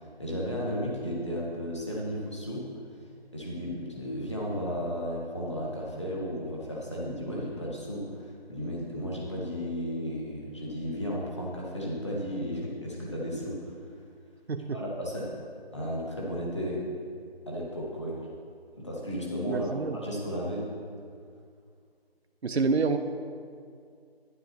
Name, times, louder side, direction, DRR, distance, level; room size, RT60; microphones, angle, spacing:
voice 1, 0.0-2.7 3.3-13.7 14.7-15.3 15.7-16.9 17.5-18.3 18.7-19.7 20.0-20.7, equal, 30° left, -4 dB, 1.6 m, -34 dB
voice 2, 14.5-14.8 19.5-20.0 22.4-23.0, right 4 dB, 85° right, 7 dB, 0.7 m, -27 dB
11.5 x 10.5 x 2.9 m, 2.2 s
figure-of-eight pair, 180°, 31 cm